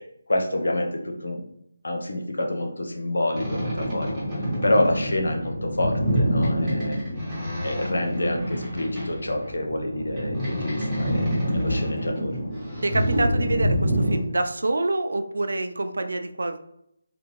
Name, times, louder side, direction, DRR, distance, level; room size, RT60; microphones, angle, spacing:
voice 1, 0.3-1.4 1.8-4.2 4.6-7.0 7.6-12.4, left 1 dB, 85° left, 3 dB, 0.7 m, -27 dB
Boat Water vehicle, 3.3-14.2, equal, 10° right, 1.2 m, -26 dB
voice 2, 12.8-16.6, right 2 dB, 80° right, 8 dB, 0.4 m, -26 dB
3.4 x 2.5 x 3.0 m, 0.78 s
figure-of-eight pair, 170°, 0 cm